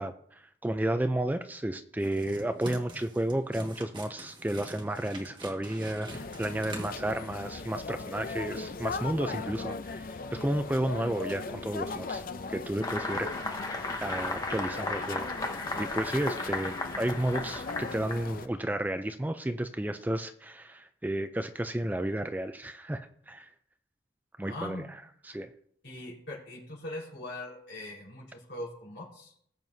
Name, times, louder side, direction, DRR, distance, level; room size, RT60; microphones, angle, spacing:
voice 1, 0.0-12.2 12.5-15.3 15.8-23.5 24.4-24.9 25.2-25.5, right 1 dB, 10° right, 8 dB, 0.4 m, -32 dB
sound 1, 2.0-7.6, right 1 dB, 25° right, 1.6 m, -45 dB
sound 2, 6.1-18.5, left 4 dB, 50° left, 0.5 m, -39 dB
sound 3, 12.8-18.3, left 2 dB, 20° left, 0.9 m, -35 dB
voice 2, 24.4-25.0 25.8-29.3, left 1 dB, 70° left, -3 dB, 4.3 m, -41 dB
19.5 x 7.5 x 2.7 m, 0.65 s
head